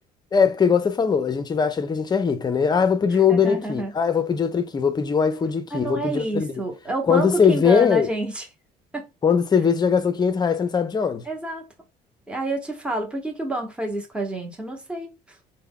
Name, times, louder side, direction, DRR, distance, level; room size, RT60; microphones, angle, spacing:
voice 1, 0.3-6.5 7.1-8.1 9.2-11.2, left 6 dB, 25° left, 0.5 m, -21 dB
voice 2, 3.3-3.9 5.7-8.4 8.9-9.0 11.3-11.6 12.3-15.1, right 1 dB, 5° right, 0.9 m, -28 dB
3.3 x 2.1 x 3.6 m
cardioid pair, 110°, 17 cm